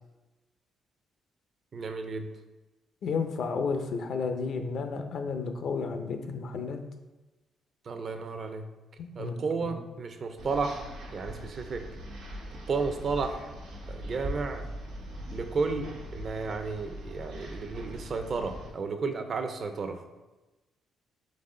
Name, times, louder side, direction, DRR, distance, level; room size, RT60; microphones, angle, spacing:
voice 1, 1.7-2.3 7.9-8.7 9.2-11.9 12.7-13.5 13.9-14.7 15.3-20.0, right 4 dB, 50° right, 7 dB, 0.5 m, -33 dB
voice 2, 3.0-6.8 9.0-9.4 9.6-9.7, left 5 dB, 65° left, 6 dB, 0.5 m, -32 dB
sound 1, 10.4-18.7, equal, 90° right, 0.9 m, -41 dB
4.0 x 3.5 x 3.7 m, 1.1 s
cardioid pair, 90°, 0 cm